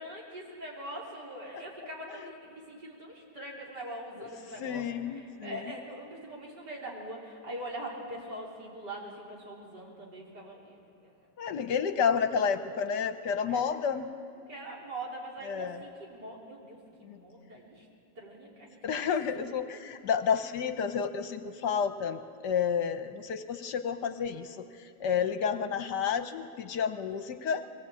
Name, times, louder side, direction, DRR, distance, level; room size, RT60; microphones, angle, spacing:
voice 1, 0.0-10.8 11.0-11.1 13.5-13.6 14.5-17.9 18.2-19.0 19.3-19.6 25.0-25.3, right 1 dB, 60° right, -4 dB, 4.5 m, -43 dB
voice 2, 4.6-5.6 11.4-14.1 15.4-15.8 17.0-17.2 18.8-27.6, left 7 dB, 70° left, 9 dB, 1.4 m, -30 dB
22.0 x 18.0 x 8.4 m, 2.6 s
omnidirectional pair, 2.1 m